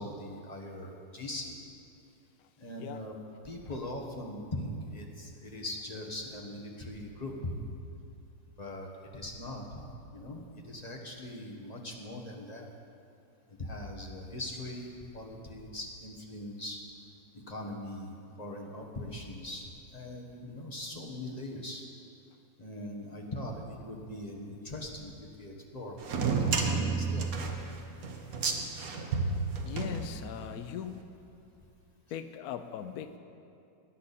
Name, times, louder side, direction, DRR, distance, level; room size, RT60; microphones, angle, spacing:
voice 1, 0.0-1.6 2.6-3.1 3.4-7.6 8.6-9.8 10.1-12.7 13.6-16.8 17.3-21.8 22.6-27.3, left 1 dB, 25° left, -1 dB, 1.3 m, -41 dB
sound 1, 26.0-30.6, right 4 dB, 55° right, 1.4 m, -31 dB
voice 2, 29.6-31.0 32.1-33.2, left 9 dB, 70° left, 9 dB, 1.0 m, -39 dB
20.0 x 10.0 x 4.2 m, 2.6 s
omnidirectional pair, 1.9 m